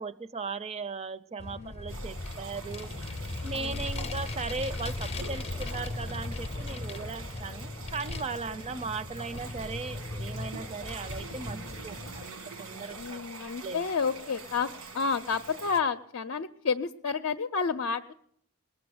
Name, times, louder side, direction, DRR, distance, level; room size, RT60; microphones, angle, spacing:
voice 1, 0.0-2.9 3.4-11.6 11.8-13.2 13.6-13.8, right 4 dB, 30° right, 15 dB, 0.5 m, -37 dB
Vehicle, 1.4-12.3, left 2 dB, 30° left, 0.6 m, -38 dB
sound 1, 1.9-15.8, right 3 dB, 85° right, 1.4 m, -45 dB
voice 2, 13.0-14.7 14.9-18.1, left 5 dB, 70° left, 7 dB, 0.5 m, -30 dB
20.0 x 7.0 x 7.8 m, 0.70 s
head